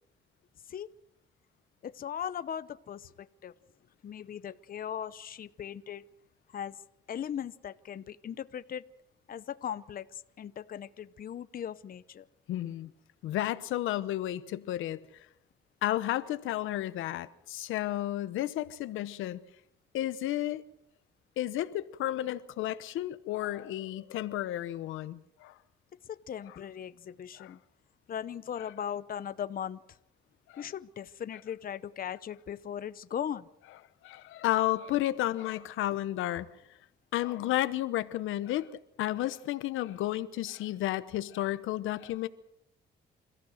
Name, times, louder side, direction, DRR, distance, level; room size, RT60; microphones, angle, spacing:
voice 1, 1.8-3.5 4.0-6.0 6.5-6.8 7.1-8.8 9.3-12.3 26.1-27.6 28.1-29.8 30.6-33.5, left 9 dB, 45° left, 0.7 m, -38 dB
voice 2, 12.5-12.9 13.2-15.0 15.8-19.4 19.9-20.6 21.4-25.5 27.4-27.6 30.5-30.7 34.0-36.5 37.1-38.7 39.0-42.3, left 14 dB, 85° left, 1.0 m, -32 dB
28.0 x 14.5 x 6.5 m
cardioid pair, 90°, 20 cm